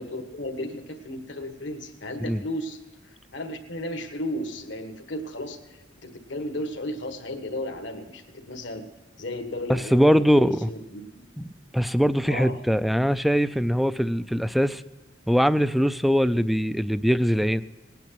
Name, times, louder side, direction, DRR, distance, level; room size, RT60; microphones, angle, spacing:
voice 1, 0.0-2.8 3.0-8.8 9.2-11.0 12.3-12.6, left 1 dB, 75° left, 5 dB, 1.6 m, -34 dB
voice 2, 9.7-10.7 11.4-11.5 11.7-14.8 15.3-17.6, equal, ahead, 14 dB, 0.4 m, -22 dB
19.0 x 9.3 x 5.9 m, 1.2 s
head